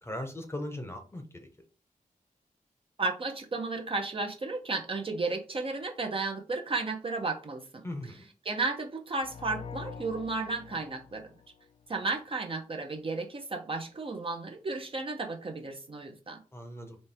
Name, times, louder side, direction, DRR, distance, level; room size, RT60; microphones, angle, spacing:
voice 1, 0.0-1.5 7.8-8.3 16.5-17.0, left 1 dB, 20° left, 0.8 m, -39 dB
voice 2, 3.0-7.9 8.4-11.3 11.9-16.4, right 3 dB, 40° right, 0.8 m, -33 dB
sound 1, 9.2-12.0, left 6 dB, 40° left, 0.5 m, -45 dB
4.3 x 3.3 x 3.4 m
wide cardioid pair, 135°, 14 cm